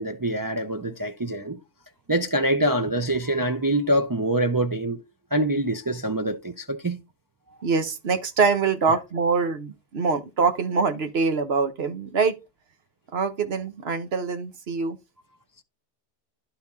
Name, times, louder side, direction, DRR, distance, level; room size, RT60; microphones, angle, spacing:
voice 1, 0.0-1.6 2.1-5.0 5.3-7.0, right 1 dB, 35° right, 0.3 m, -25 dB
voice 2, 7.6-12.4 13.1-15.0, right 5 dB, 65° right, 1.2 m, -24 dB
11.5 x 4.1 x 3.5 m
omnidirectional pair, 1.2 m